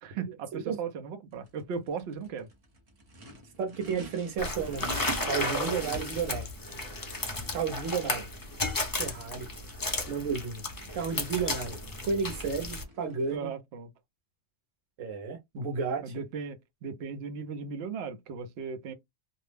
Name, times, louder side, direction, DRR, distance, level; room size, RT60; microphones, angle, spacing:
voice 1, 0.0-2.5 13.3-13.9 16.0-18.9, right 6 dB, 65° right, 0.8 m, -37 dB
Race car auto racing / Idling / Accelerating revving vroom, 1.3-13.4, right 1 dB, 35° right, 0.7 m, -51 dB
voice 2, 3.6-4.8 5.2-6.5 7.5-8.3 8.9-9.5 10.1-10.6 10.9-11.8 12.0-13.5 15.0-16.1, right 5 dB, 90° right, 1.2 m, -32 dB
sound 1, 4.4-12.8, left 2 dB, 25° left, 0.4 m, -34 dB
2.6 x 2.0 x 3.3 m
omnidirectional pair, 1.3 m